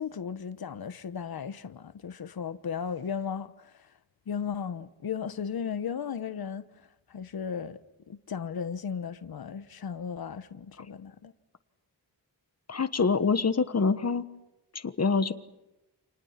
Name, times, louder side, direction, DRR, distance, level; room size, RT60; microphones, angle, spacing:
voice 1, 0.0-3.9 4.3-7.8 8.1-11.3, left 7 dB, 60° left, 1.2 m, -36 dB
voice 2, 12.7-14.2 14.8-15.3, left 4 dB, 40° left, 1.3 m, -25 dB
30.0 x 29.5 x 5.9 m
wide cardioid pair, 170°, 40 cm